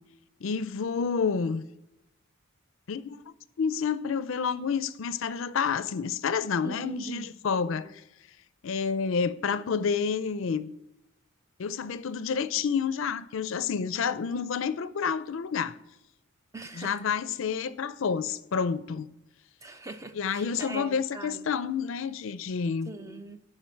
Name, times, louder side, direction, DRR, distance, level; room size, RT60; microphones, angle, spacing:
voice 1, 0.4-1.6 2.9-7.9 8.6-10.7 11.6-15.7 16.7-19.1 20.1-22.9, left 6 dB, 65° left, 0.4 m, -29 dB
voice 2, 6.6-7.2 7.7-7.9 16.5-16.9 19.6-21.4 22.9-23.4, right 3 dB, 15° right, 0.4 m, -41 dB
11.0 x 5.0 x 4.4 m
head